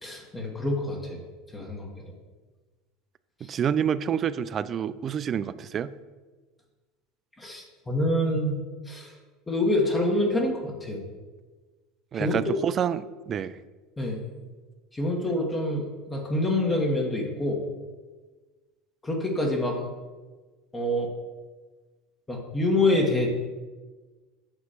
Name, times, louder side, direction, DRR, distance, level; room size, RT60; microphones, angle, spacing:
voice 1, 0.0-1.2 1.5-1.9 3.4-3.5 7.4-9.1 9.5-11.0 12.1-12.4 14.0-14.2 14.9-17.6 19.0-19.8 20.7-21.1 22.3-23.3, left 1 dB, 15° left, -1 dB, 1.5 m, -26 dB
voice 2, 3.4-5.9 12.1-13.6, right 8 dB, 40° right, 14 dB, 0.3 m, -28 dB
8.2 x 3.1 x 5.9 m, 1.3 s
hypercardioid pair, 75°, 0 cm